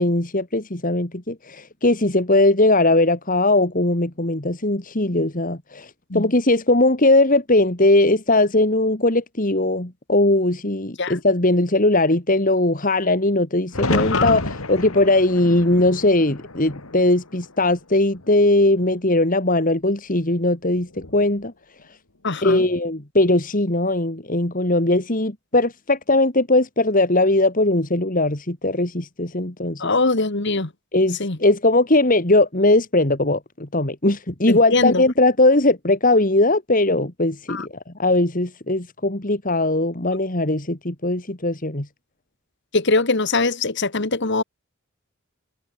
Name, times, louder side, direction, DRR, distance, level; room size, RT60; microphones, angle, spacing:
voice 1, 0.0-21.5 22.4-29.9 30.9-37.6 38.0-41.9, left 2 dB, 40° left, 2.5 m, -19 dB
sound 1, 13.7-17.8 18.1-18.9 20.8-21.2, left 2 dB, 80° left, 3.0 m, -29 dB
voice 2, 14.0-14.4 22.2-22.6 29.8-30.7 31.2-31.4 34.5-35.0 37.5-37.7 42.7-44.4, left 3 dB, 55° left, 1.8 m, -22 dB
head